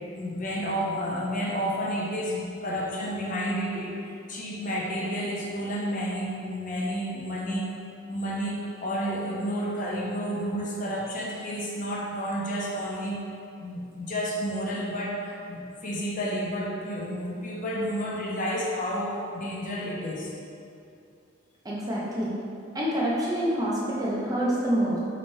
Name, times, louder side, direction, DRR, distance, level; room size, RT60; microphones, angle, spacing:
voice 1, 0.1-7.7 8.1-13.2 13.6-20.3, equal, 40° left, -3 dB, 0.5 m, -31 dB
voice 2, 21.6-22.3 22.7-25.0, right 1 dB, 15° right, -5 dB, 0.4 m, -26 dB
4.2 x 3.0 x 2.6 m, 2.6 s
head